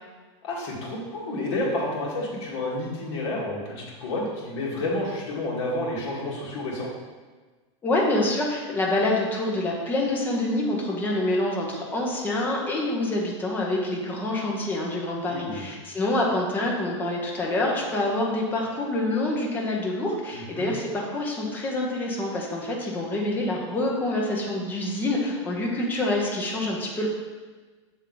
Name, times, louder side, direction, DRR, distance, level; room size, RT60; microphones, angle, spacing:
voice 1, 0.4-6.9 15.3-15.6 20.3-20.7, left 1 dB, 55° left, -4 dB, 1.8 m, -30 dB
voice 2, 7.8-27.1, left 1 dB, 10° left, -2 dB, 0.8 m, -26 dB
7.1 x 3.5 x 3.9 m, 1.4 s
supercardioid pair, 165°, 16 cm